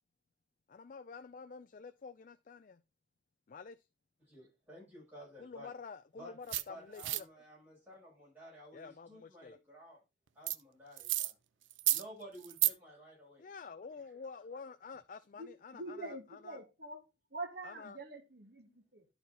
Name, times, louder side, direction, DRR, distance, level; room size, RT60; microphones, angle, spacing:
voice 1, 0.7-2.8 3.5-3.8 5.4-7.3 8.7-9.6 13.4-16.6 17.6-18.0, left 5 dB, 45° left, 0.4 m, -49 dB
voice 2, 4.2-5.7 6.2-6.3 6.7-10.0 10.3-11.3 11.9-13.5, equal, 10° right, 6.1 m, -53 dB
sound 1, 6.5-6.6 7.0-7.2 10.5-10.6 11.0-11.3 11.7-12.0 12.4-12.7, right 15 dB, 85° right, 0.5 m, -31 dB
voice 3, 15.4-17.0 17.3-19.1, right 2 dB, 55° right, 1.7 m, -45 dB
11.5 x 4.3 x 4.0 m
head